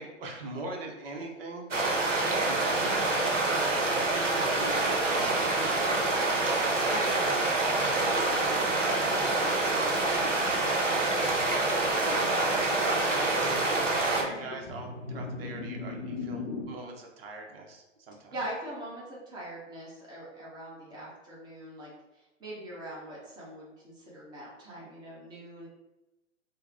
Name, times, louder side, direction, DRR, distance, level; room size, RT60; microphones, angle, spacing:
voice 1, 0.0-3.7 4.4-5.9 6.3-7.5 8.0-11.4 12.1-18.3, right 2 dB, 50° right, 1 dB, 0.8 m, -41 dB
sound 1, 1.7-14.2, right 2 dB, 85° right, 0.7 m, -26 dB
voice 2, 6.9-7.3 7.9-8.3 12.0-12.6 18.3-21.9 22.4-25.7, right 1 dB, 10° right, -6 dB, 0.9 m, -40 dB
sound 2, 11.9-16.7, left 3 dB, 30° left, 0.6 m, -40 dB
3.4 x 2.1 x 3.4 m, 1.0 s
figure-of-eight pair, 110°, 36 cm